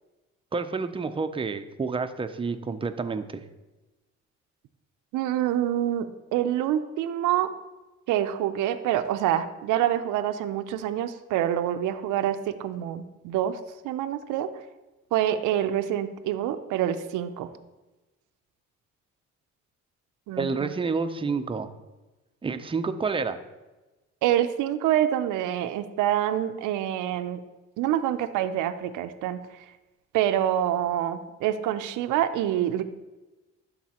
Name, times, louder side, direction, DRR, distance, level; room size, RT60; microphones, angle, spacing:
voice 1, 0.5-3.4 20.4-21.7 22.4-23.4, right 4 dB, 20° right, 9 dB, 0.5 m, -29 dB
voice 2, 5.1-7.5 8.1-13.6 13.8-14.5 15.1-17.5 20.3-20.7 24.2-27.4 27.8-29.4 30.1-32.8, right 11 dB, 85° right, 10 dB, 0.5 m, -26 dB
11.5 x 4.1 x 2.9 m, 1.1 s
cardioid pair, 90°, 30 cm